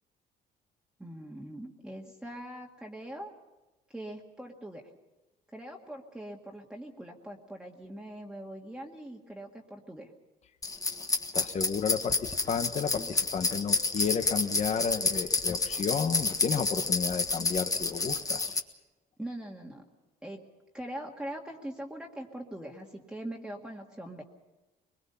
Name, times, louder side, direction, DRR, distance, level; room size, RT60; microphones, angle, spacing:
voice 1, 1.0-3.3 3.9-4.9 5.5-10.1 19.2-19.8 20.2-20.4 20.7-24.2, right 1 dB, 5° right, 0 dB, 1.9 m, -42 dB
sound 1, 10.6-18.6, left 3 dB, 20° left, 1.5 m, -30 dB
voice 2, 11.3-18.6, left 6 dB, 40° left, 9 dB, 1.3 m, -32 dB
22.5 x 22.0 x 5.7 m, 1.1 s
cardioid pair, 110°, 17 cm